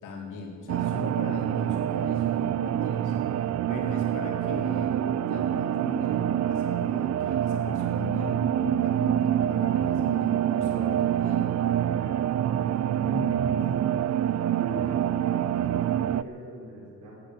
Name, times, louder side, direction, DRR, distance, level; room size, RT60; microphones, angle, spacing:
voice 1, 0.0-3.4 3.7-11.5, left 3 dB, 85° left, -1 dB, 4.1 m, -39 dB
sound 1, 0.7-16.2, right 11 dB, 60° right, 0.6 m, -26 dB
voice 2, 13.0-13.9 14.6-17.2, equal, 90° right, -1 dB, 4.6 m, -40 dB
15.0 x 11.0 x 8.4 m, 2.2 s
cardioid pair, 90°, 30 cm